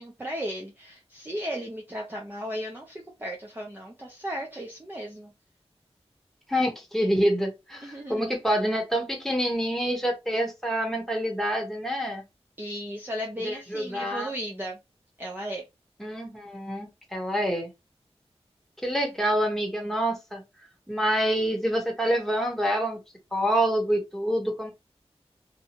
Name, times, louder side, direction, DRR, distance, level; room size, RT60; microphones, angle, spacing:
voice 1, 0.0-5.3 7.8-8.3 12.6-14.8 15.2-15.6, equal, 20° right, 0.6 m, -35 dB
voice 2, 6.5-12.2 13.4-14.3 16.0-17.7 18.8-20.4 20.9-23.0 23.3-24.7, equal, 5° left, 1.1 m, -27 dB
2.7 x 2.2 x 2.9 m
wide cardioid pair, 70°, 11 cm